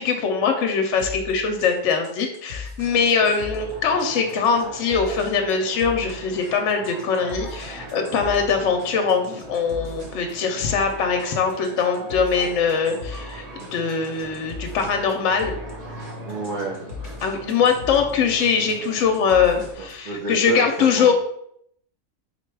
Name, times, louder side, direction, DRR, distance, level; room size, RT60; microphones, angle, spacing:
voice 1, 0.0-15.6 17.2-21.1, left 6 dB, 70° left, 4 dB, 0.8 m, -22 dB
sound 1, 1.0-20.1, left 4 dB, 35° right, 0.9 m, -39 dB
sound 2, 2.8-19.7, right 2 dB, 65° right, 1.4 m, -40 dB
voice 2, 16.3-16.8 19.8-21.1, right 3 dB, 50° right, -3 dB, 0.6 m, -29 dB
4.0 x 2.2 x 4.6 m, 0.70 s
omnidirectional pair, 1.4 m